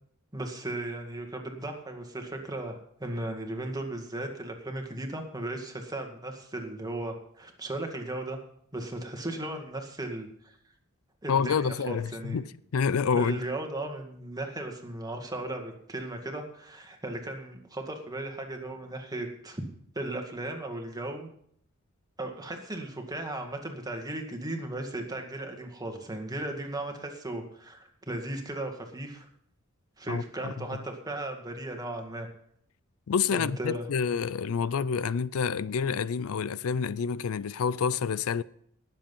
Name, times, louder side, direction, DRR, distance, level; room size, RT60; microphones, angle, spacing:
voice 1, 0.3-8.4 8.7-10.6 11.2-12.4 13.1-19.6 20.0-21.3 22.2-29.3 30.0-32.3 33.3-33.9, right 1 dB, 20° right, 2.0 m, -36 dB
voice 2, 11.3-12.5 12.7-13.4 30.1-30.5 33.1-38.4, left 6 dB, 80° left, 0.4 m, -28 dB
19.5 x 7.7 x 5.5 m
head